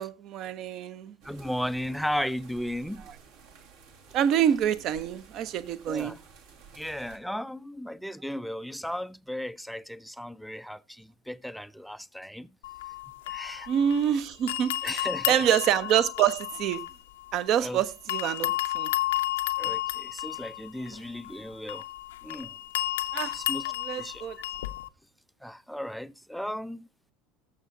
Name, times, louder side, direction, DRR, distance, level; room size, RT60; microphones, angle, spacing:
voice 1, 0.0-1.2 4.1-6.2 13.7-16.8 17.3-18.9 23.1-23.4 23.8-24.4, right 9 dB, 45° right, 0.8 m, -26 dB
voice 2, 1.2-3.0 5.9-6.2 6.7-12.5 13.3-13.7 14.8-15.4 17.6-17.8 19.6-21.9 22.2-22.6 23.3-23.7 24.0-24.2 25.4-26.9, equal, ahead, 0.4 m, -35 dB
sound 1, 1.2-7.2, right 5 dB, 60° right, 2.1 m, -52 dB
sound 2, 12.6-14.1 14.5-17.7 18.1-24.9, left 16 dB, 65° left, 0.6 m, -32 dB
19.0 x 7.3 x 2.6 m
figure-of-eight pair, 70°, 0 cm